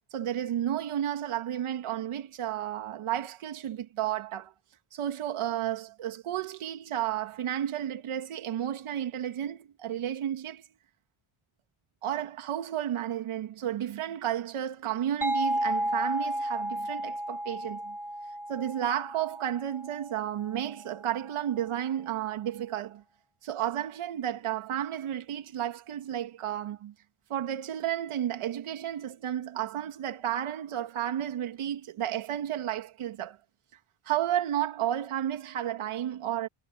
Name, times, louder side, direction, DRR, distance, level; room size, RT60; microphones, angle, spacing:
voice 1, 0.1-4.5 4.9-10.6 12.0-18.0 18.5-23.0 23.4-26.9 27.3-33.4 34.1-36.5, right 11 dB, 80° right, 2.4 m, -32 dB
sound 1, 15.2-20.7, right 1 dB, 5° right, 1.0 m, -33 dB
wide cardioid pair, 170°, 49 cm